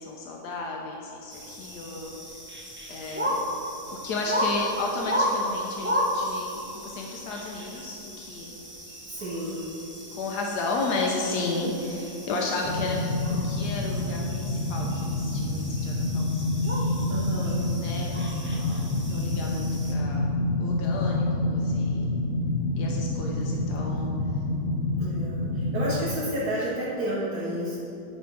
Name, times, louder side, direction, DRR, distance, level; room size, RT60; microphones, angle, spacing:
voice 1, 0.0-2.4 2.9-3.4 3.9-8.6 10.1-17.1 17.7-18.2 18.5-20.3 20.6-22.1 22.8-24.1, left 3 dB, 80° left, -1 dB, 1.3 m, -33 dB
sound 1, 1.3-19.9, equal, 10° right, 0.5 m, -34 dB
voice 2, 9.1-9.7 17.1-17.7 25.0-27.8, equal, 65° right, -8 dB, 1.8 m, -31 dB
sound 2, 12.6-26.0, left 2 dB, 60° left, 1.3 m, -28 dB
9.5 x 3.7 x 5.9 m, 2.9 s
omnidirectional pair, 1.7 m